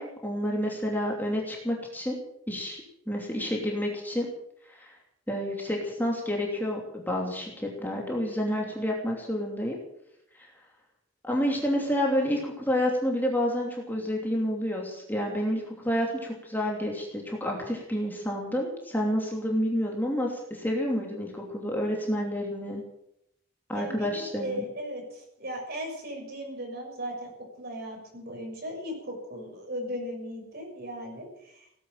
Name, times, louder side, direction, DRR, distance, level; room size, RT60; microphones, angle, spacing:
voice 1, 0.0-2.2 2.5-4.3 4.7-4.9 5.3-9.8 11.2-22.8 23.7-24.6, equal, 10° left, -1 dB, 2.9 m, -29 dB
voice 2, 23.7-27.3 27.6-31.7, equal, 50° right, 1 dB, 6.7 m, -37 dB
17.5 x 10.0 x 7.7 m, 0.78 s
head